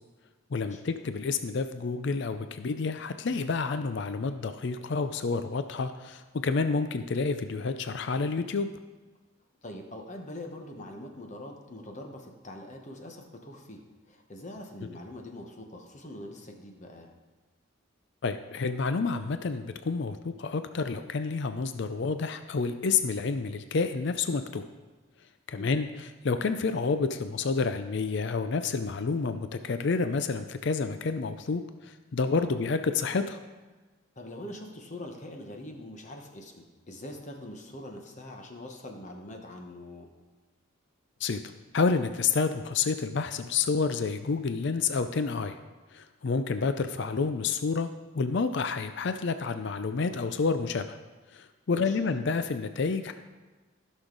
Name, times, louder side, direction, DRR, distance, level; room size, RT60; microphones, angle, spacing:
voice 1, 0.5-8.7 18.2-24.6 25.5-33.4 41.2-41.4 41.7-45.6 45.9-47.9 48.1-51.0 51.3-53.1, left 4 dB, 55° left, 9 dB, 0.4 m, -29 dB
voice 2, 9.6-17.1 25.5-25.7 32.3-32.5 34.2-40.1 51.7-52.0, left 1 dB, 35° left, 3 dB, 1.1 m, -43 dB
15.0 x 6.4 x 3.9 m, 1.3 s
head